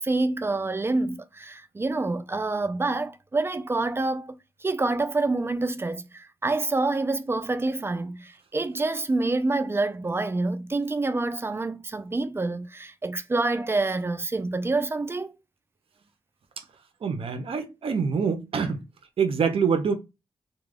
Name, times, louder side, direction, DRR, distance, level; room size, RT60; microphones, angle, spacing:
voice 1, 0.0-4.3 4.6-15.4, right 2 dB, 25° right, 0.4 m, -27 dB
voice 2, 17.0-18.8 19.2-19.9, right 6 dB, 65° right, 0.6 m, -25 dB
2.3 x 2.2 x 3.2 m
cardioid pair, 60°, 10 cm